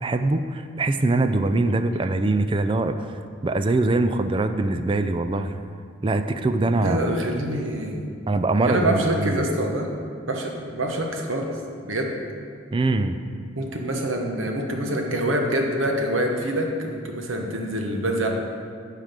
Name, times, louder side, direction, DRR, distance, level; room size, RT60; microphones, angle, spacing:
voice 1, 0.0-3.0 3.4-5.6 6.0-7.1 8.3-9.5 12.7-13.2, right 2 dB, 25° right, 9 dB, 0.3 m, -23 dB
voice 2, 6.6-8.1 8.7-9.9 10.3-11.5 11.8-12.1 13.5-18.3, right 1 dB, 80° right, 2 dB, 1.2 m, -25 dB
9.3 x 5.0 x 6.7 m, 2.3 s
head